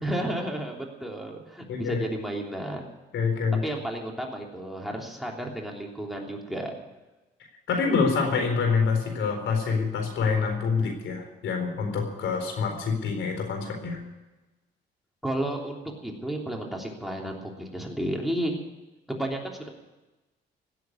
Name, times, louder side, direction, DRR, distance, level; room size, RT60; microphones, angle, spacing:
voice 1, 0.0-2.9 3.6-6.7 15.2-18.6 19.1-19.7, right 1 dB, ahead, 0 dB, 3.2 m, -32 dB
voice 2, 1.7-2.0 3.1-3.6 7.7-14.0, left 5 dB, 75° left, 3 dB, 4.1 m, -26 dB
17.0 x 7.9 x 9.6 m, 1.1 s
cardioid pair, 90°, 20 cm